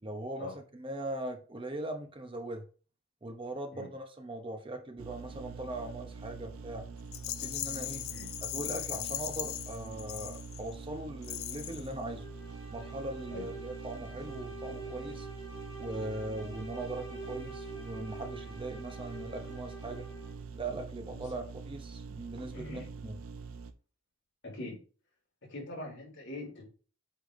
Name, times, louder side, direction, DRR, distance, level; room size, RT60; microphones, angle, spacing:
voice 1, 0.0-2.6 3.2-6.9 7.4-8.1 8.4-12.3 12.7-15.3 15.8-20.1 20.5-23.2, right 1 dB, 25° right, 4 dB, 0.8 m, -40 dB
sound 1, 5.0-23.7, right 5 dB, 85° right, 0.7 m, -45 dB
Rattle, 7.1-10.8 11.2-11.9, left 14 dB, 75° left, 0.5 m, -38 dB
sound 2, 12.1-20.5, right 2 dB, 15° left, 2.8 m, -46 dB
voice 2, 22.5-22.9 24.4-24.8 25.4-26.7, left 2 dB, 60° left, -2 dB, 3.2 m, -42 dB
8.3 x 5.5 x 2.6 m, 0.38 s
head